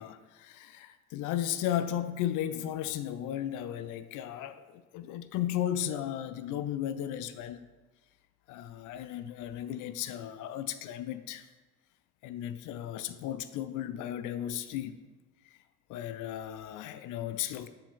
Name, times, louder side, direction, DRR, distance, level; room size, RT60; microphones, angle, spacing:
voice 1, 0.0-7.6 8.5-11.4 12.2-14.9 15.9-17.7, left 11 dB, 45° left, 0.5 m, -35 dB
6.7 x 4.8 x 3.6 m
hypercardioid pair, 65°, 44 cm